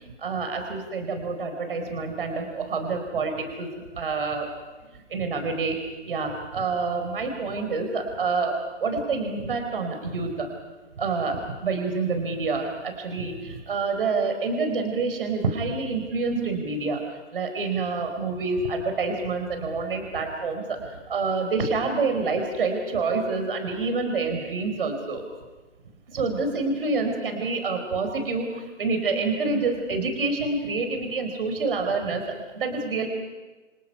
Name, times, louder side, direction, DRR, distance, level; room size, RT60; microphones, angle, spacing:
voice 1, 0.2-4.5 4.9-5.8 6.0-10.5 11.0-17.0 17.3-25.2 26.1-33.1, right 4 dB, 45° right, 5 dB, 4.5 m, -27 dB
28.5 x 25.0 x 5.6 m, 1.2 s
hypercardioid pair, 165°, 37 cm